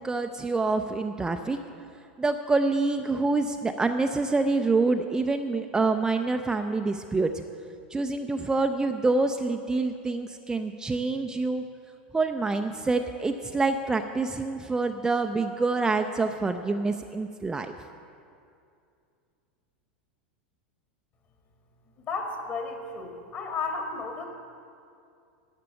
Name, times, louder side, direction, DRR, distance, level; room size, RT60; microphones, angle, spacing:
voice 1, 0.0-1.6 2.2-7.4 7.9-11.7 12.1-17.7, right 3 dB, 10° right, 5 dB, 0.4 m, -26 dB
voice 2, 22.1-24.3, left 4 dB, 35° left, 3 dB, 1.9 m, -33 dB
11.5 x 6.7 x 8.8 m, 2.5 s
figure-of-eight pair, 90°, 6 cm